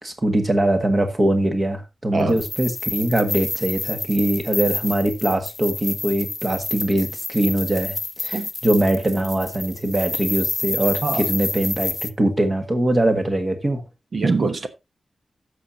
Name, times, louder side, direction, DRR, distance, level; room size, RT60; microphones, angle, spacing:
voice 1, 0.0-13.8, right 1 dB, 25° right, 1.7 m, -22 dB
sound 1, 2.3-12.1, left 2 dB, 25° left, 0.5 m, -29 dB
voice 2, 14.1-14.7, right 4 dB, 50° right, 1.0 m, -23 dB
16.0 x 6.6 x 2.8 m
wide cardioid pair, 150°, 0 cm